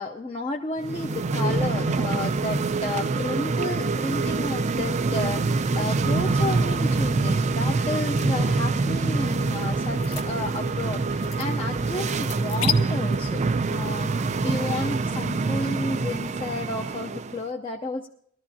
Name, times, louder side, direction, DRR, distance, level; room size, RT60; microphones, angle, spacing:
voice 1, 0.0-13.4 13.7-14.1 14.4-18.1, left 2 dB, 25° left, 0 dB, 0.7 m, -32 dB
sound 1, 0.8-17.4, right 3 dB, 35° right, 0.4 m, -25 dB
sound 2, 7.6-12.7, left 8 dB, 75° left, 0.9 m, -36 dB
20.5 x 13.5 x 2.8 m, 0.68 s
head